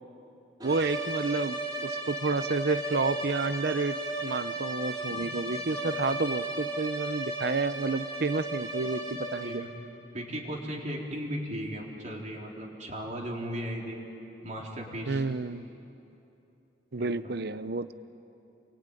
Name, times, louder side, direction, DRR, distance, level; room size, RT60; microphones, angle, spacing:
sound 1, 0.6-9.8, right 1 dB, 25° right, 3.4 m, -35 dB
voice 1, 0.6-9.6 15.1-15.7 16.9-17.9, right 3 dB, 60° right, 14 dB, 0.7 m, -30 dB
voice 2, 10.1-14.0 14.4-15.2 17.0-17.4, equal, 45° right, -1 dB, 4.0 m, -37 dB
28.5 x 23.0 x 9.2 m, 2.9 s
head